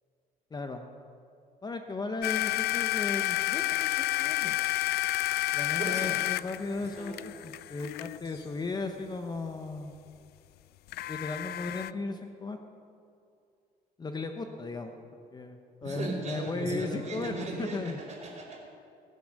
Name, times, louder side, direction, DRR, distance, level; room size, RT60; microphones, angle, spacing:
voice 1, 0.5-0.8 1.6-4.6 5.5-9.9 11.1-12.6 14.0-14.9 15.3-18.0, left 3 dB, 25° left, 6 dB, 0.9 m, -36 dB
sound 1, 2.2-8.2 10.9-11.9, left 17 dB, 70° left, 0.4 m, -30 dB
voice 2, 5.8-6.2 6.9-7.4 15.8-18.6, right 3 dB, 40° right, -6 dB, 3.3 m, -37 dB
21.0 x 7.1 x 6.6 m, 2.5 s
cardioid pair, 110°, 17 cm